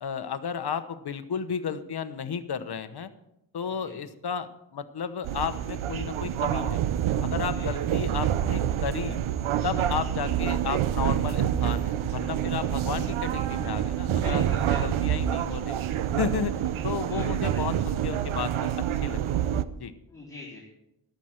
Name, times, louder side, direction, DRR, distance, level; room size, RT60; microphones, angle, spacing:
voice 1, 0.0-3.1 3.5-6.8 7.2-9.2 9.6-14.4 14.8-15.8 16.2-19.2 19.8-19.9, left 7 dB, 55° left, 11 dB, 1.0 m, -33 dB
voice 2, 3.7-4.0 7.4-7.7 12.9-13.0 14.1-15.2 17.1-17.8 20.1-20.6, left 3 dB, 5° left, -8 dB, 4.1 m, -43 dB
sound 1, 5.2-19.6, right 10 dB, 85° right, 0.7 m, -27 dB
14.0 x 11.5 x 4.4 m, 0.86 s
wide cardioid pair, 120°, 47 cm